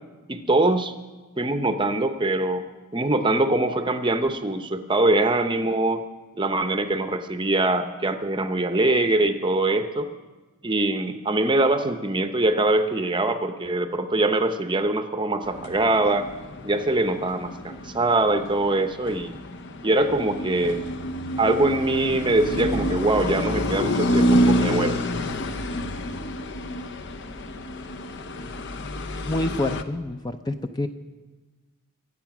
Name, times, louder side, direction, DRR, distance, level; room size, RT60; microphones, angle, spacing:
voice 1, 0.3-0.9 1.4-2.7 2.9-6.0 6.4-10.1 10.6-16.3 16.6-19.3 19.8-20.8 21.4-25.0, right 2 dB, 20° right, 8 dB, 0.7 m, -23 dB
sound 1, 15.4-29.8, equal, 50° left, 0.7 m, -28 dB
voice 2, 29.3-30.9, left 1 dB, 20° left, 7 dB, 0.5 m, -27 dB
24.0 x 8.3 x 6.0 m, 1.2 s
head